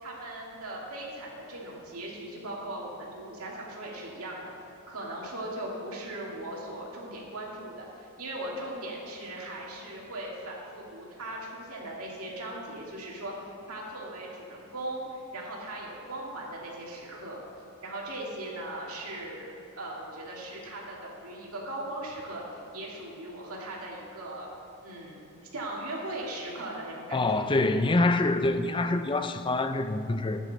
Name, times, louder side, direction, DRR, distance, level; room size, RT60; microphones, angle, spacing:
voice 1, 0.0-17.4 17.8-24.5 24.8-25.2 25.5-27.5, right 1 dB, 70° right, -3 dB, 2.4 m, -39 dB
voice 2, 27.1-30.4, left 2 dB, 20° left, 9 dB, 0.5 m, -25 dB
13.0 x 9.3 x 4.2 m, 3.0 s
head